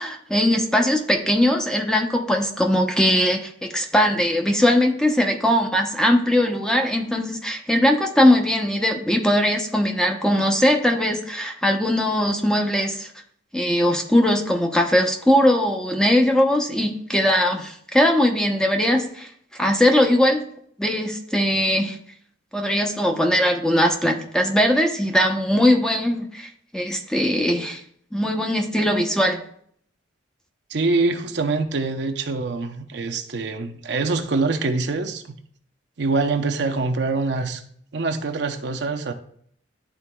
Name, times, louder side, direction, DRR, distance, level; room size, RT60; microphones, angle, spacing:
voice 1, 0.0-13.1 13.5-19.3 19.6-20.5 20.8-22.0 22.5-27.8 28.1-29.4, left 1 dB, 5° left, 0.6 m, -20 dB
voice 2, 30.7-35.2 36.0-37.6 37.9-39.1, right 3 dB, 65° right, 0.6 m, -24 dB
11.0 x 4.0 x 2.2 m
head